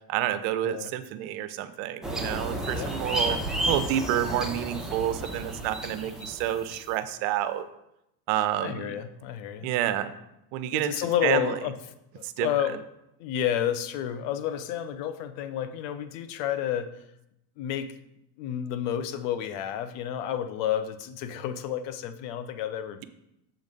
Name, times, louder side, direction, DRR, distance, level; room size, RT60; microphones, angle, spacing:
voice 1, 0.1-3.4 3.7-7.6 8.3-8.9 9.6-10.1 10.5-11.5 12.2-12.5, right 12 dB, 60° right, 11 dB, 0.7 m, -29 dB
sound 1, 2.0-6.9, right 1 dB, ahead, 0.9 m, -32 dB
voice 2, 2.7-3.4 8.6-9.7 10.7-11.7 12.1-12.8 13.2-17.0 17.6-17.9 18.4-23.0, left 10 dB, 60° left, 11 dB, 0.7 m, -30 dB
7.2 x 3.9 x 5.2 m, 0.84 s
supercardioid pair, 110°, 48 cm